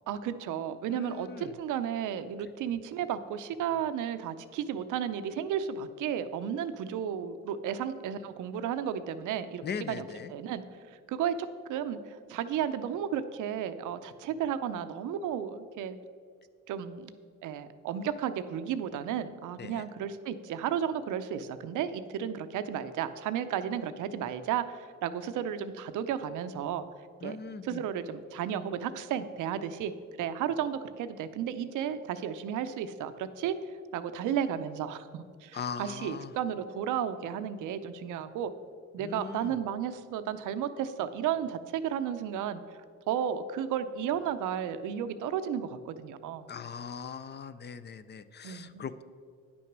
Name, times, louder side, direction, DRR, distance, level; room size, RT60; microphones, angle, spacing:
voice 1, 0.1-10.0 10.3-10.6 11.1-12.0 12.3-16.0 16.7-26.8 27.2-27.4 27.6-29.9 30.2-33.6 33.9-38.5 38.9-42.6 43.1-46.4 48.4-48.8, right 9 dB, 85° right, 12 dB, 0.7 m, -33 dB
voice 2, 0.9-1.5 9.6-10.3 19.6-19.9 27.2-27.8 35.5-36.3 39.0-39.6 46.5-49.0, left 6 dB, 35° left, 13 dB, 0.6 m, -40 dB
9.7 x 6.2 x 6.0 m, 2.1 s
cardioid pair, 90°, 30 cm